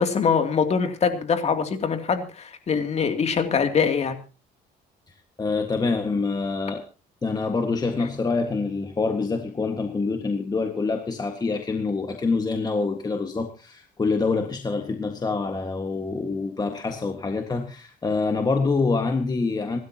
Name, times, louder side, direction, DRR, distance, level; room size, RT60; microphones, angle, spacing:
voice 1, 0.0-4.2, left 6 dB, 40° left, 6 dB, 2.8 m, -23 dB
voice 2, 5.1-6.8 7.2-19.8, left 4 dB, 25° left, 5 dB, 1.6 m, -26 dB
27.0 x 12.5 x 2.9 m, 0.32 s
cardioid pair, 110°, 17 cm